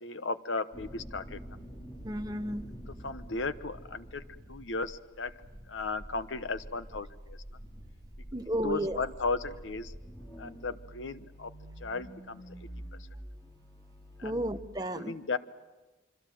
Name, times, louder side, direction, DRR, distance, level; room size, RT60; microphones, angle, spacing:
voice 1, 0.0-1.4 3.0-4.2 4.5-5.3 5.7-7.4 8.4-9.9 10.4-11.5 11.8-12.4 14.2-14.4 14.9-15.4, left 3 dB, 80° left, 12 dB, 1.1 m, -35 dB
sound 1, 0.7-14.6, equal, 15° left, 3.3 m, -47 dB
voice 2, 2.0-2.6 8.3-9.0 14.2-15.2, right 1 dB, 20° right, 7 dB, 1.0 m, -33 dB
26.0 x 24.5 x 7.8 m, 1.2 s
head